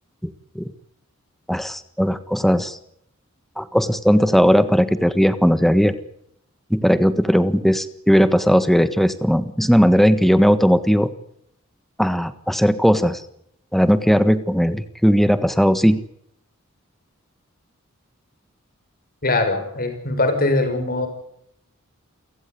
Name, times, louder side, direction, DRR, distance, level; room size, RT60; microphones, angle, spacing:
voice 1, 0.2-0.7 1.5-2.8 3.6-6.0 6.7-11.1 12.0-13.2 13.7-16.0, equal, ahead, 12 dB, 1.5 m, -17 dB
voice 2, 19.2-21.1, left 2 dB, 45° left, 7 dB, 6.1 m, -21 dB
29.5 x 16.0 x 9.6 m, 0.74 s
head